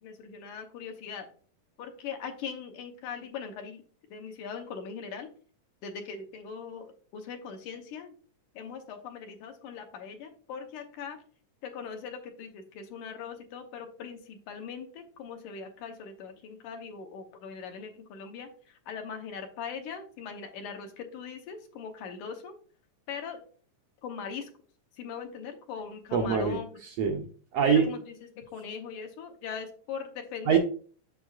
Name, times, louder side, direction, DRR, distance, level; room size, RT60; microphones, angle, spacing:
voice 1, 0.0-1.3 1.8-3.8 4.1-5.3 5.8-8.1 8.6-11.2 11.6-22.5 23.1-23.4 24.0-24.5 25.0-26.7 27.6-30.6, left 6 dB, 80° left, 4 dB, 2.3 m, -40 dB
voice 2, 26.1-27.2 27.5-27.8 30.5-30.6, right 7 dB, 75° right, 3 dB, 1.5 m, -24 dB
7.7 x 6.8 x 2.4 m, 0.43 s
omnidirectional pair, 3.6 m